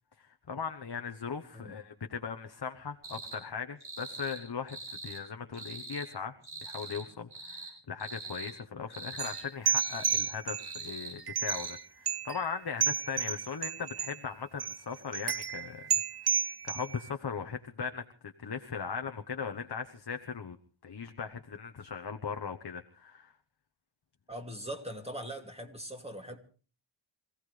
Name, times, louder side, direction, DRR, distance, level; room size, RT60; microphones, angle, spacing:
voice 1, 0.2-6.3 6.6-15.9 16.2-16.3 16.6-20.6 20.8-23.3, left 6 dB, 50° left, 6 dB, 1.1 m, -39 dB
sound 1, 3.0-3.4 3.8-4.4 4.7-5.2 5.5-6.1 6.4-7.1 7.3-7.7 8.0-8.5 8.9-9.4 9.7-10.2 10.6-11.2 11.5-11.7, right 3 dB, 70° right, 7.7 m, -43 dB
sound 2, 9.2-10.8 11.3-11.8 12.1-12.6 12.8-14.2 14.6-14.8 15.1-17.1, right 7 dB, 50° right, 0.8 m, -32 dB
voice 2, 24.3-26.4, right 1 dB, 10° right, 3 dB, 2.6 m, -41 dB
27.0 x 16.0 x 3.3 m, 0.38 s
cardioid pair, 40°, 49 cm